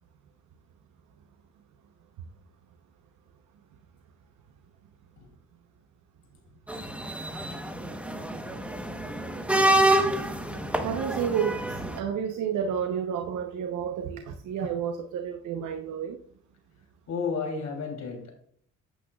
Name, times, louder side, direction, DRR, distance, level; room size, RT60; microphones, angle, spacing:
sound 1, 6.7-12.0, right 1 dB, 5° right, 1.0 m, -27 dB
voice 1, 9.7-10.3 17.1-18.3, left 5 dB, 65° left, 3.1 m, -34 dB
voice 2, 10.8-16.2, right 8 dB, 75° right, 0.9 m, -30 dB
9.2 x 8.5 x 2.3 m
cardioid pair, 90°, 30 cm